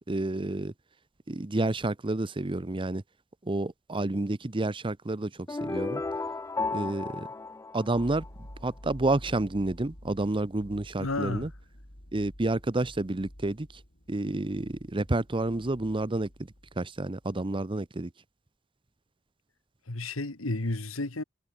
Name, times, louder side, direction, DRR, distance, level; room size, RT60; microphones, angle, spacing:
voice 1, 0.1-0.7 1.3-3.0 3.5-5.3 5.6-6.0 6.7-7.3 7.7-8.2 8.6-11.5 12.1-13.7 14.1-16.3 16.8-18.1, right 2 dB, 25° right, 0.8 m, -29 dB
sound 1, 5.5-8.5, left 3 dB, 15° left, 0.3 m, -33 dB
sound 2, 7.9-17.0 17.2-17.4, equal, 50° left, 5.6 m, -49 dB
voice 2, 11.0-11.5 19.9-21.2, left 2 dB, 85° left, 1.9 m, -32 dB
head